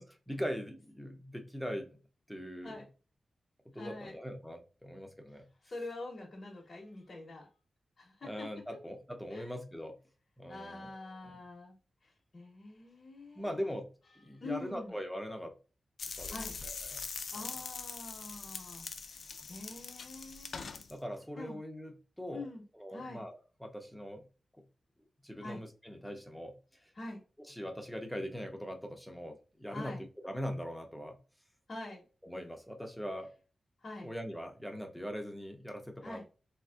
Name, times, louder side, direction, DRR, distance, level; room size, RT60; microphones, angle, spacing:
voice 1, 0.3-1.9 2.3-2.8 3.7-5.4 8.2-10.0 10.4-11.0 13.4-13.9 14.2-15.5 16.2-16.4 16.6-17.0 20.9-21.9 22.2-22.5 22.7-24.2 25.2-26.5 27.5-30.0 30.2-31.2 32.2-33.3 34.0-36.2, equal, ahead, 0.5 m, -41 dB
voice 2, 3.7-4.2 5.6-7.5 8.0-8.5 9.3-9.5 10.5-11.8 12.0-13.8 14.1-14.9 16.3-16.6 17.3-20.6 21.4-21.6 22.3-22.6 22.9-23.3 25.4-25.6 26.9-27.2 29.7-30.1 31.7-32.0 33.8-34.1 36.0-36.2, left 2 dB, 40° left, 0.7 m, -45 dB
sound 1, 16.0-20.9, left 5 dB, 70° left, 0.4 m, -42 dB
3.4 x 2.5 x 2.3 m
wide cardioid pair, 140°, 0 cm